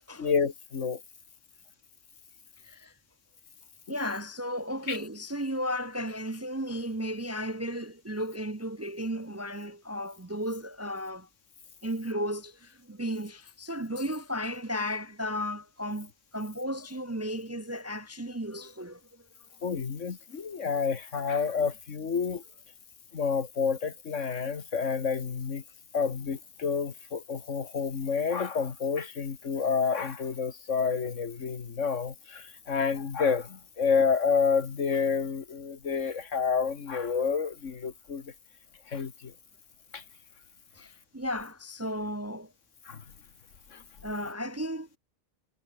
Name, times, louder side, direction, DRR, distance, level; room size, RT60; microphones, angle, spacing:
voice 1, 0.2-1.0 3.9-4.0 4.9-5.0 19.6-22.4 23.1-25.6 25.9-38.3 38.9-39.3 39.9-40.0 42.9-43.0 43.7-43.8, left 5 dB, 85° left, 2.0 m, -29 dB
voice 2, 2.6-2.9 3.9-11.3 11.8-19.2 40.7-42.5 44.0-45.0, equal, 20° right, 0.5 m, -34 dB
omnidirectional pair, 1.3 m